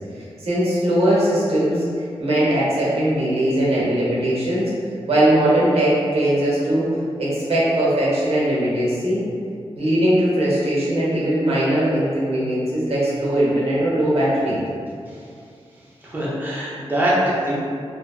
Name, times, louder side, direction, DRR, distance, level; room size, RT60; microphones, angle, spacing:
voice 1, 0.4-1.8 2.2-4.7 5.1-6.9 7.2-9.2 9.8-14.6, right 1 dB, 65° right, -7 dB, 0.8 m, -20 dB
voice 2, 16.0-17.6, right 1 dB, 15° right, -7 dB, 0.6 m, -22 dB
2.7 x 2.3 x 2.3 m, 2.3 s
wide cardioid pair, 135°, 11 cm